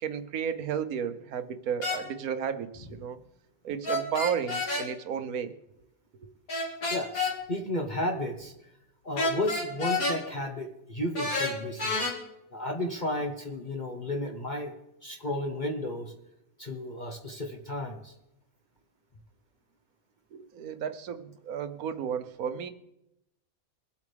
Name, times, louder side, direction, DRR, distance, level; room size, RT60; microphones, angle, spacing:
voice 1, 0.0-3.2 3.6-5.5 20.3-22.7, right 8 dB, 75° right, 10 dB, 1.3 m, -33 dB
sound 1, 1.8-2.0 3.8-4.9 6.5-7.3 9.2-10.2 11.1-12.1, left 2 dB, 70° left, 2.6 m, -29 dB
voice 2, 6.9-8.5 9.0-12.1 12.5-14.7 15.0-16.1 16.6-18.1, left 1 dB, 35° left, 2 dB, 1.0 m, -33 dB
22.5 x 8.3 x 3.4 m, 0.87 s
omnidirectional pair, 1.6 m